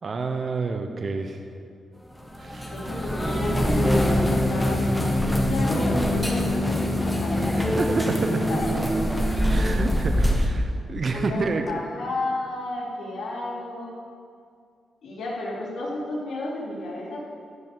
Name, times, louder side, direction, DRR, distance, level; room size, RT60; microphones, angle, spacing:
voice 1, 0.0-1.4 2.4-2.7 7.5-8.4 9.5-11.6, right 4 dB, 40° right, 6 dB, 0.8 m, -29 dB
sound 1, 2.2-10.5, equal, 5° left, 1.3 m, -23 dB
voice 2, 2.7-7.7 8.1-8.8 11.1-14.0 15.0-17.3, left 2 dB, 70° left, -5 dB, 3.7 m, -32 dB
14.0 x 5.4 x 9.5 m, 2.3 s
cardioid pair, 120°, 0 cm